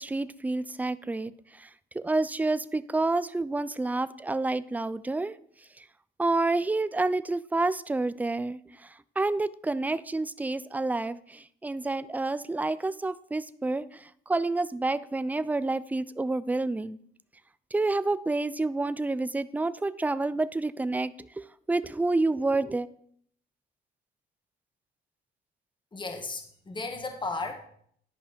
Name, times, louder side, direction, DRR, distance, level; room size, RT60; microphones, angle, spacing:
voice 1, 0.0-5.4 5.8-5.9 6.2-17.0 17.7-22.9, right 2 dB, 10° right, 16 dB, 0.4 m, -29 dB
voice 2, 25.9-27.5, left 3 dB, 25° left, 5 dB, 1.5 m, -34 dB
10.0 x 5.4 x 5.2 m, 0.65 s
cardioid pair, 90°, 20 cm